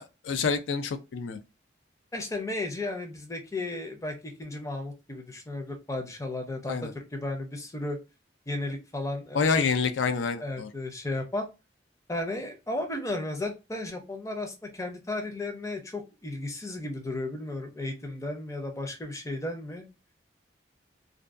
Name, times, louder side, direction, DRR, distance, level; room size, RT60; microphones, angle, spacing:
voice 1, 0.0-1.4 6.7-6.9 9.3-10.7, left 5 dB, 85° left, 0.4 m, -27 dB
voice 2, 2.1-8.0 8.5-9.6 10.4-11.5 12.1-19.9, left 2 dB, 15° left, 0.5 m, -34 dB
2.5 x 2.2 x 2.3 m
head